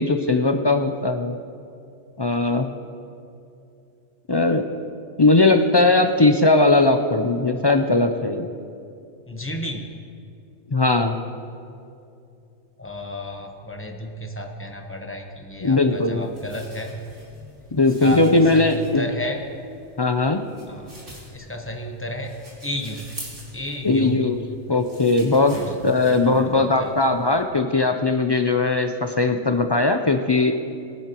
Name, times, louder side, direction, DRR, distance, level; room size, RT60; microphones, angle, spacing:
voice 1, 0.0-1.4 2.2-2.7 4.3-4.6 5.2-8.5 10.7-11.2 15.6-16.2 17.7-19.0 20.0-20.4 23.8-24.4 24.7-25.6 25.8-30.5, left 3 dB, 40° left, 6 dB, 0.3 m, -19 dB
voice 2, 9.3-9.9 12.8-16.9 18.0-18.2 18.5-19.4 20.6-20.9 21.3-22.3 22.6-23.2 23.5-24.2 25.5-25.7 26.0-26.9, equal, 10° left, 2 dB, 1.0 m, -32 dB
sound 1, 15.6-27.4, equal, 80° right, 3.2 m, -44 dB
22.0 x 10.0 x 3.0 m, 2.5 s
omnidirectional pair, 1.2 m